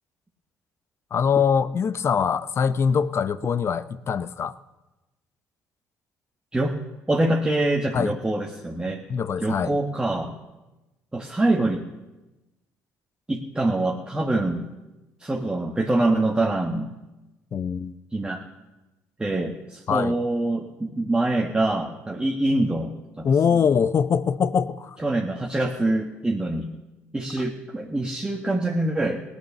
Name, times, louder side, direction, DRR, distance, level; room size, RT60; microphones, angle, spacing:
voice 1, 1.1-4.5 7.9-8.1 9.1-9.7 17.5-18.0 19.9-20.1 23.2-25.0, left 6 dB, 45° left, 0.7 m, -23 dB
voice 2, 7.1-9.0 9.4-10.3 11.1-11.8 13.3-14.6 15.2-16.9 18.1-18.4 19.2-23.6 25.0-26.7 27.1-29.2, right 2 dB, 15° right, 1.5 m, -25 dB
17.5 x 9.3 x 6.8 m
hypercardioid pair, 65°, 6 cm